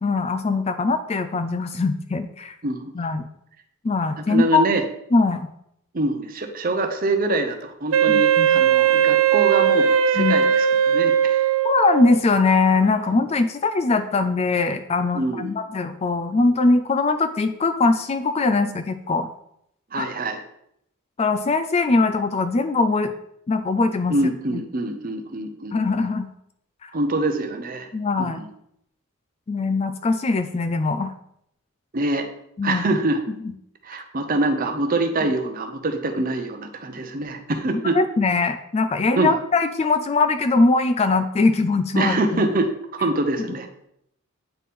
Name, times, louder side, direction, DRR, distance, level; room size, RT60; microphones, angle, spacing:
voice 1, 0.0-2.5 2.9-3.2 3.8-4.7 5.1-5.5 8.1-8.5 10.2-10.4 11.6-19.3 20.0-20.1 21.2-23.1 23.5-24.1 25.7-26.3 26.8-26.9 27.9-28.4 29.5-31.1 32.6-32.8 37.9-42.4, left 3 dB, 30° left, 9 dB, 0.3 m, -21 dB
voice 2, 4.3-4.9 5.9-11.5 15.1-15.5 19.9-20.4 24.1-25.7 26.9-27.9 28.2-28.5 31.9-32.3 32.6-33.2 33.8-38.0 39.2-39.3 41.9-43.7, right 2 dB, 40° right, 6 dB, 0.7 m, -25 dB
Wind instrument woodwind instrument, 7.9-12.2, right 8 dB, 70° right, 0.4 m, -18 dB
8.9 x 4.2 x 3.6 m, 0.75 s
head